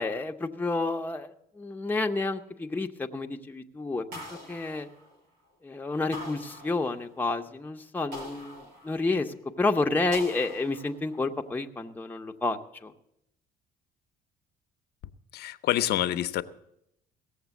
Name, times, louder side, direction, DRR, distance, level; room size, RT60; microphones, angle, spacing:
voice 1, 0.0-4.2 4.5-4.9 5.6-12.9, left 3 dB, 10° left, 3 dB, 0.8 m, -30 dB
sound 1, 4.1-5.5 6.1-7.3 8.1-9.4 10.1-11.3, left 1 dB, 90° right, 5.9 m, -43 dB
voice 2, 15.3-16.4, left 13 dB, 70° left, 11 dB, 0.7 m, -27 dB
17.5 x 7.3 x 7.1 m, 0.79 s
cardioid pair, 110°, 17 cm